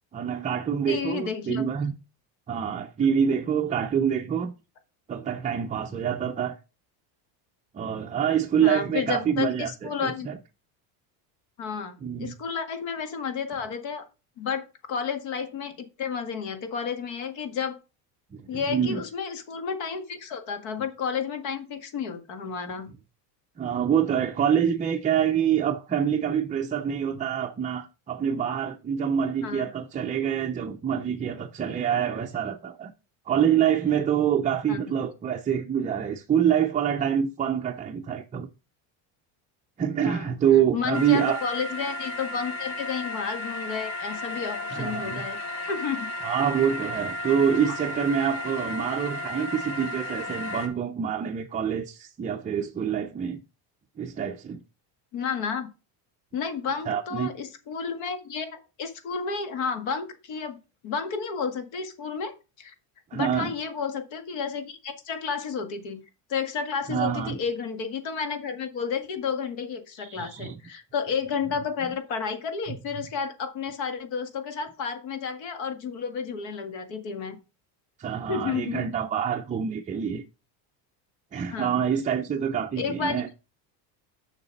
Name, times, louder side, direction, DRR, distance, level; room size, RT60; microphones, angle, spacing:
voice 1, 0.1-1.9 2.5-4.5 5.1-6.6 7.7-10.4 12.0-12.4 18.3-19.0 23.6-32.9 33.3-38.5 39.8-41.4 44.7-45.3 46.2-53.4 54.0-54.6 56.9-57.3 63.1-63.5 66.9-67.4 70.0-70.6 78.0-80.2 81.3-83.3, right 8 dB, 15° right, 0.4 m, -26 dB
voice 2, 0.9-1.7 8.6-10.3 11.6-14.0 14.4-17.8 18.5-22.9 29.4-29.7 34.7-34.8 40.0-40.3 40.7-46.1 55.1-55.7 56.3-60.6 60.8-62.7 63.1-66.0 66.3-77.4 78.3-78.9 81.5-81.9 82.8-83.2, left 6 dB, 70° left, 1.9 m, -31 dB
sound 1, 40.9-50.7, left 1 dB, 85° left, 2.7 m, -34 dB
6.9 x 6.5 x 5.2 m
cardioid pair, 140°, 47 cm